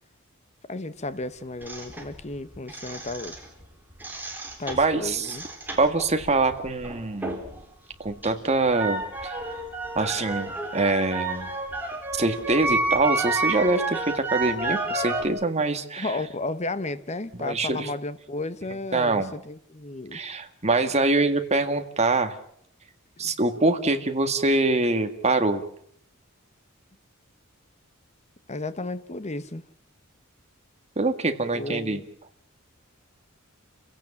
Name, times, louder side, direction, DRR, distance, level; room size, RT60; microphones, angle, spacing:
voice 1, 0.7-3.4 4.6-5.4 16.0-20.2 23.2-23.3 28.5-29.6 31.5-32.0, left 2 dB, 30° left, 1.1 m, -33 dB
sound 1, 1.6-3.6 3.9-7.6 7.9-15.3, right 2 dB, 10° right, 4.1 m, -30 dB
voice 2, 4.8-5.4 5.8-7.4 8.0-9.4 10.0-11.5 12.1-16.2 17.4-17.9 18.9-19.3 20.1-22.3 23.2-25.6 31.0-32.0, right 2 dB, 30° right, 1.9 m, -24 dB
29.0 x 17.0 x 7.2 m
head